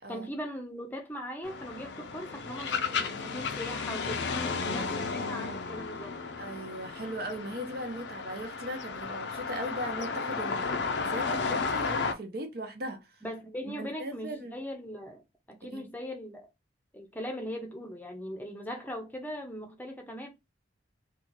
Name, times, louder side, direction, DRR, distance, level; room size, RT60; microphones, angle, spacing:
voice 1, 0.1-4.3 4.6-6.1 13.2-15.2 15.5-16.5 16.9-20.3, equal, 10° left, 0.7 m, -39 dB
sound 1, 1.4-12.1, left 4 dB, 70° left, 0.5 m, -33 dB
voice 2, 6.4-13.0 13.6-14.6 15.6-15.8, equal, 55° right, 0.8 m, -38 dB
2.8 x 2.4 x 3.9 m
head